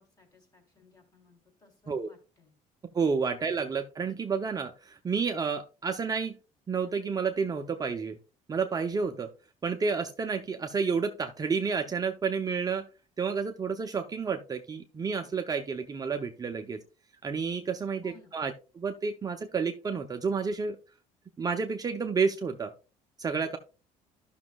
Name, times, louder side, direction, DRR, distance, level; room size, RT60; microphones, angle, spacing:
voice 1, 0.0-2.5 3.4-3.5 18.0-18.4, left 3 dB, 25° left, 3 dB, 3.4 m, -60 dB
voice 2, 2.9-6.4 6.7-8.2 8.5-9.3 9.6-12.9 13.2-16.8 17.2-20.8 21.4-22.7 23.2-23.6, right 5 dB, 25° right, 5 dB, 0.7 m, -30 dB
13.0 x 6.2 x 2.3 m, 0.33 s
cardioid pair, 115°, 14 cm